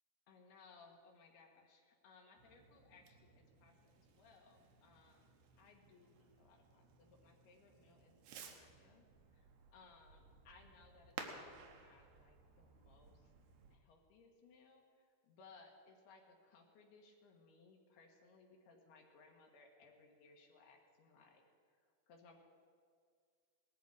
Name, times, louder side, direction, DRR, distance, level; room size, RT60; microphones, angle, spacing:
voice 1, 0.3-9.1 9.3-13.3 13.7-21.8 22.1-22.4, left 4 dB, 85° left, 1 dB, 3.5 m, -65 dB
Fireworks, 2.4-13.8, right 6 dB, 80° right, 3.1 m, -57 dB
18.5 x 13.5 x 4.8 m, 2.1 s
omnidirectional pair, 4.5 m